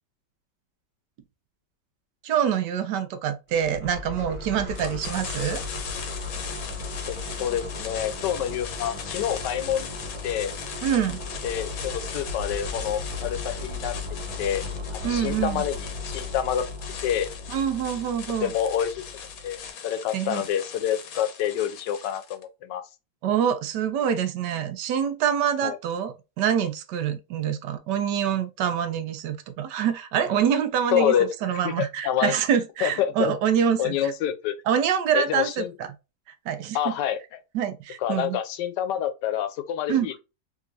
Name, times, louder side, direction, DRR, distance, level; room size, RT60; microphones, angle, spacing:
voice 1, 2.2-5.6 10.8-11.2 15.0-15.7 17.5-18.5 20.1-20.4 23.2-34.1 34.7-35.9 36.5-36.8 37.5-38.4 39.9-40.1, right 8 dB, 80° right, 1.2 m, -25 dB
sound 1, 3.5-19.7, left 3 dB, 25° left, 0.7 m, -36 dB
sound 2, 4.7-22.4, left 7 dB, 65° left, 1.1 m, -39 dB
voice 2, 7.1-10.5 11.4-13.9 14.4-14.7 14.9-16.7 17.0-17.3 18.4-19.1 19.4-22.8 25.6-25.8 30.9-31.7 32.0-32.3 32.8-33.3 33.8-34.6 35.1-35.7 36.7-37.4 38.0-40.2, left 10 dB, 85° left, 1.2 m, -27 dB
3.7 x 2.9 x 2.4 m
omnidirectional pair, 1.8 m